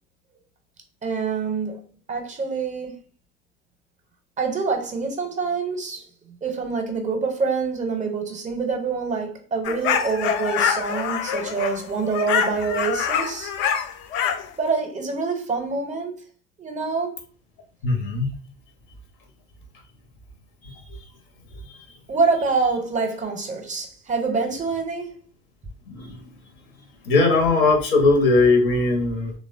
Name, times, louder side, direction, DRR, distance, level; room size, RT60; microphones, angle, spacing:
voice 1, 1.0-1.8 2.1-3.0 4.4-6.1 6.4-13.5 14.6-16.2 16.6-17.2 22.1-25.1, right 4 dB, 25° right, 0.6 m, -26 dB
sound 1, 9.6-14.5, left 8 dB, 40° left, 0.4 m, -25 dB
voice 2, 17.8-18.3 20.6-21.1 21.6-21.9 25.9-26.4 27.0-29.3, left 3 dB, 60° left, 0.7 m, -20 dB
3.1 x 2.1 x 2.4 m
figure-of-eight pair, 60°, 30 cm